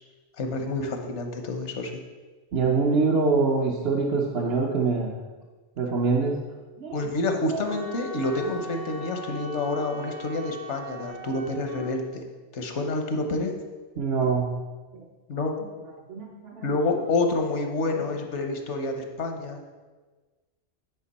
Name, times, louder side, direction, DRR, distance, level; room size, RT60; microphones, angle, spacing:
voice 1, 0.4-1.9 6.9-12.3 12.5-13.5 15.3-15.5 16.6-19.7, left 2 dB, 75° left, 4 dB, 1.2 m, -28 dB
voice 2, 2.5-5.1 5.8-6.3 6.8-6.9 7.5-7.6 14.0-14.5 14.9-15.0 16.1-16.7 17.9-18.1, right 4 dB, 65° right, -1 dB, 1.0 m, -24 dB
Wind instrument woodwind instrument, 7.7-11.9, right 2 dB, 85° right, 1.8 m, -40 dB
9.1 x 5.0 x 4.2 m, 1.3 s
omnidirectional pair, 1.2 m